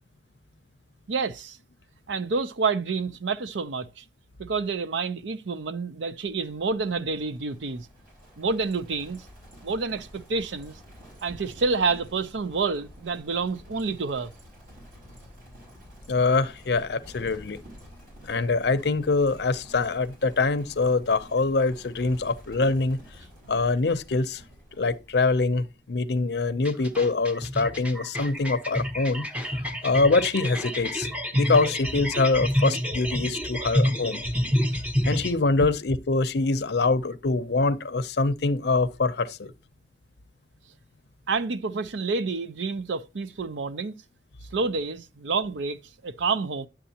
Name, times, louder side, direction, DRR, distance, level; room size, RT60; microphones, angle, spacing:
voice 1, 1.1-1.6 2.1-4.0 4.4-7.9 8.4-9.3 9.6-10.8 11.2-14.3 35.6-35.7 41.3-44.0 44.5-46.7, right 4 dB, 85° right, 0.6 m, -28 dB
Livestock farm animals working animals, 6.2-25.8, equal, 50° right, 4.9 m, -50 dB
voice 2, 16.1-17.6 18.2-23.0 23.5-24.4 24.8-29.3 29.8-31.1 31.3-34.2 35.0-39.5, left 3 dB, 65° left, 0.6 m, -24 dB
sound 1, 26.5-35.3, equal, 10° right, 0.8 m, -28 dB
10.0 x 7.5 x 2.8 m
head